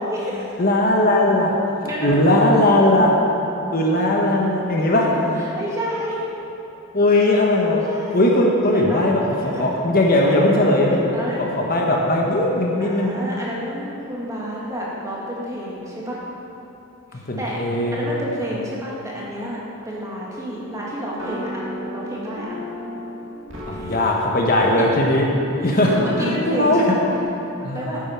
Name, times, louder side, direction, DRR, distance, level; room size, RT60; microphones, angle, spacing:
voice 1, 0.0-0.5 1.8-2.3 4.0-4.1 5.4-6.2 7.7-8.3 8.7-9.0 9.3-9.6 10.2-10.8 11.1-11.4 12.8-16.2 17.1-19.6 19.8-21.6 21.9-22.6 23.6-24.0 25.6-27.0 27.7-28.0, equal, 15° right, -5 dB, 1.8 m, -30 dB
voice 2, 0.6-1.5 2.0-3.1 3.7-5.1 6.9-7.8 8.1-11.1 11.4-13.1 17.3-18.0 23.7-25.3 25.6-26.8 27.6-28.0, left 1 dB, 45° left, -1 dB, 1.0 m, -18 dB
sound 1, 20.3-27.2, equal, 60° right, 2.2 m, -34 dB
8.8 x 8.7 x 5.7 m, 3.0 s
head